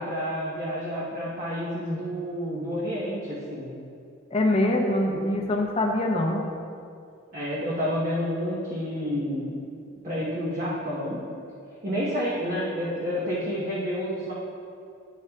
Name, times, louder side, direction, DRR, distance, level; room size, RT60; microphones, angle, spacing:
voice 1, 0.0-3.7 7.3-9.6 10.0-11.2 11.8-14.3, equal, 40° right, -8 dB, 1.1 m, -29 dB
voice 2, 4.3-6.4, left 1 dB, 30° left, 1 dB, 0.7 m, -24 dB
9.3 x 8.3 x 2.4 m, 2.4 s
head